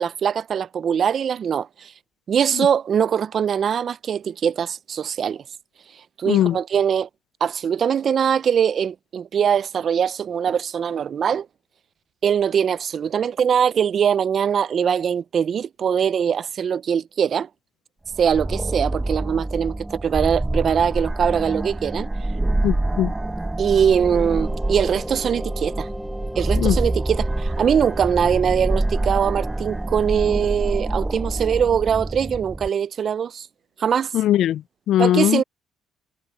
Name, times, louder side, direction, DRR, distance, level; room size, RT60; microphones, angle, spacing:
voice 1, 0.0-1.9 2.3-5.4 6.2-7.1 7.4-11.5 12.2-17.5 18.2-22.1 23.6-25.9 26.4-33.5 33.8-34.1 35.0-35.4, right 8 dB, 50° right, 0.5 m, -22 dB
voice 2, 6.3-6.6 22.6-23.1 26.6-26.8 34.1-35.4, left 12 dB, 70° left, 0.3 m, -20 dB
sound 1, 18.1-32.7, right 2 dB, 10° right, 0.9 m, -26 dB
sound 2, 23.9-30.5, left 1 dB, 5° left, 4.0 m, -39 dB
cardioid pair, 100°, 0 cm